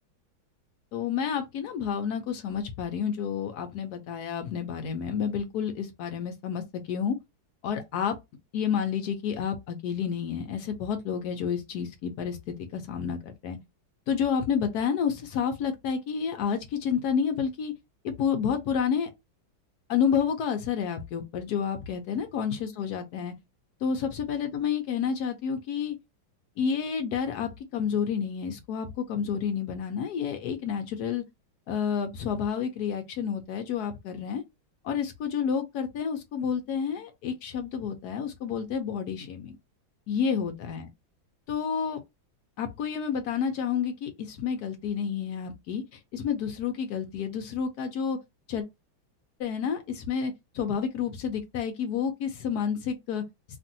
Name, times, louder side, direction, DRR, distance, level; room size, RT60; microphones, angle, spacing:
voice 1, 0.9-7.2 7.6-8.2 8.5-13.6 14.1-17.7 18.0-19.1 19.9-23.3 23.8-26.0 26.6-31.2 31.7-34.4 34.8-39.5 40.1-40.9 41.5-42.0 42.6-48.2 48.5-48.6 49.4-53.2, left 7 dB, 75° left, 0.9 m, -30 dB
3.0 x 2.5 x 2.5 m
omnidirectional pair, 2.2 m